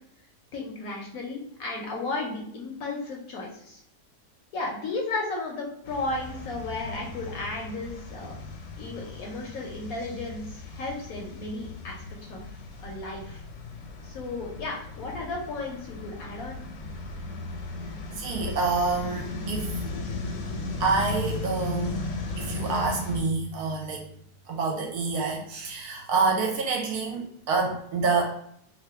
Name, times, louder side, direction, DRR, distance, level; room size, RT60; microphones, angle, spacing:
voice 1, 0.5-3.8 4.5-8.3 8.8-12.5 12.8-13.4 14.0-16.6, left 2 dB, 65° left, 0 dB, 0.9 m, -34 dB
sound 1, 5.8-23.2, left 2 dB, 90° left, 1.3 m, -36 dB
voice 2, 18.1-19.7 20.8-22.0 22.4-24.0 24.5-28.2, right 4 dB, 70° right, 1 dB, 1.1 m, -27 dB
2.8 x 2.6 x 3.3 m, 0.70 s
omnidirectional pair, 1.8 m